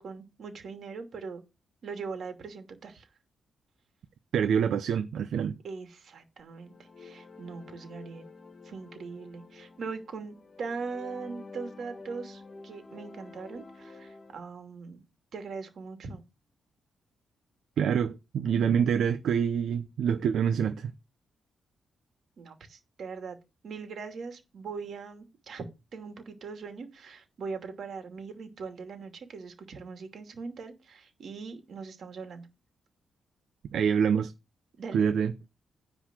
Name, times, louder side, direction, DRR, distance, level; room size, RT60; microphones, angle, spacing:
voice 1, 0.0-1.4 1.8-3.1 5.6-8.3 8.6-15.0 15.3-16.2 22.4-23.4 23.6-25.6 25.9-32.5 34.8-35.1, right 4 dB, 55° right, 2.7 m, -41 dB
voice 2, 4.3-5.5 17.8-20.9 33.7-34.3 34.9-35.3, right 7 dB, 70° right, 0.8 m, -26 dB
sound 1, 6.5-14.4, left 3 dB, 25° left, 2.0 m, -49 dB
10.0 x 4.1 x 7.5 m
wide cardioid pair, 140°, 0 cm